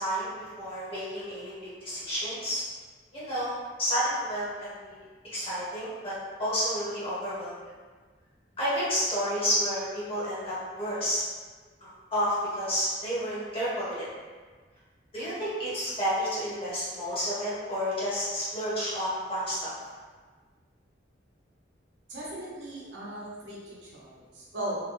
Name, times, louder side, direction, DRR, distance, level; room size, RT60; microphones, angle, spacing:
voice 1, 0.0-1.5 1.8-2.6 3.1-5.0 5.3-7.5 8.6-11.2 11.8-14.1 15.1-19.7, equal, 30° left, -10 dB, 1.2 m, -30 dB
voice 2, 22.1-24.8, right 1 dB, 85° right, -6 dB, 0.9 m, -38 dB
3.1 x 2.2 x 3.1 m, 1.4 s
head